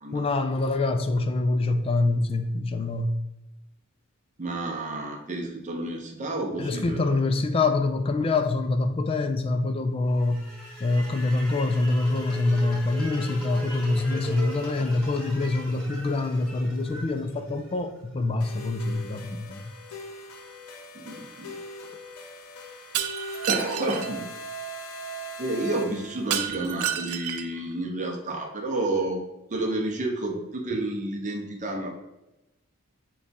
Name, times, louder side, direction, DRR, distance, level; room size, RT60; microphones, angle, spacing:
voice 1, 0.1-3.2 6.6-10.5 10.8-19.7, left 2 dB, 25° left, 0.3 m, -25 dB
voice 2, 4.4-7.2 20.9-21.5 23.5-24.3 25.4-29.2 29.5-31.9, right 2 dB, 35° right, 0.6 m, -30 dB
sound 1, 10.1-18.2, equal, 5° left, 1.0 m, -40 dB
sound 2, 18.4-26.5, right 1 dB, 80° left, 0.6 m, -40 dB
Shatter, 22.9-24.1 26.3-27.6, right 10 dB, 80° right, 0.4 m, -30 dB
4.8 x 2.3 x 4.0 m
head